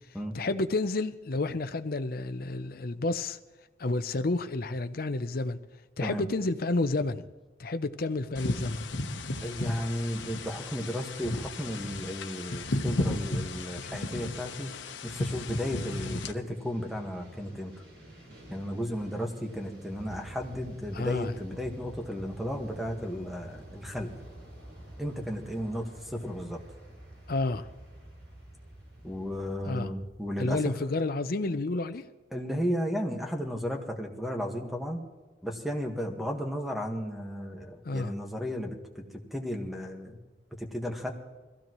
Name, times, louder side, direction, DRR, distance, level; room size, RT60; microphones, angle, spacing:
voice 1, 0.3-3.4 3.8-5.6 6.0-7.3 7.6-8.8 20.9-21.3 27.3-27.7 29.6-29.9 30.4-32.0 37.8-38.1, left 2 dB, 55° left, 0.7 m, -30 dB
sound 1, 8.4-16.3, left 2 dB, 90° left, 1.1 m, -34 dB
voice 2, 9.4-14.7 15.0-17.7 18.5-24.1 25.0-26.6 29.0-30.6 32.3-35.0 35.4-39.0 39.3-40.2 40.6-41.1, equal, ahead, 1.6 m, -34 dB
sound 2, 13.9-29.5, equal, 85° right, 5.6 m, -54 dB
sound 3, 19.9-30.3, right 1 dB, 35° right, 2.8 m, -48 dB
22.0 x 15.5 x 3.1 m
head